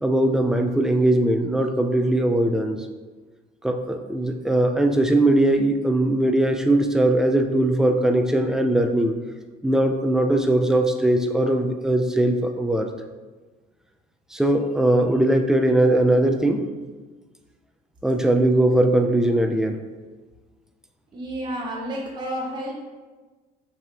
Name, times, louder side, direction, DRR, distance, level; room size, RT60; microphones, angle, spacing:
voice 1, 0.0-2.9 3.6-9.2 9.6-12.9 14.3-16.6 18.0-19.8, right 1 dB, 5° right, 5 dB, 0.4 m, -20 dB
voice 2, 21.1-22.7, equal, 25° right, -3 dB, 0.8 m, -30 dB
5.6 x 3.4 x 2.8 m, 1.3 s
cardioid pair, 110°, 17 cm